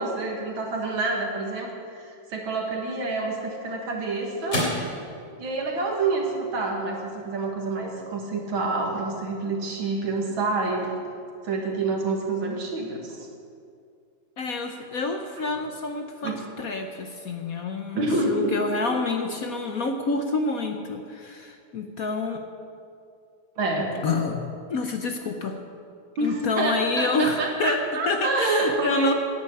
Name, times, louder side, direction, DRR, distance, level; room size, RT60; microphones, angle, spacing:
voice 1, 0.0-4.6 5.4-10.9 11.4-13.3 15.4-15.5 16.2-16.4 17.9-18.6 23.6-24.0 26.2-29.1, right 3 dB, 75° right, 1 dB, 2.7 m, -27 dB
sound 1, 3.2-11.8, left 1 dB, 30° left, 3.2 m, -38 dB
voice 2, 14.4-22.4 24.0-25.6 26.2-29.1, left 3 dB, 55° left, 5 dB, 1.1 m, -28 dB
10.5 x 10.5 x 8.5 m, 2.3 s
omnidirectional pair, 2.2 m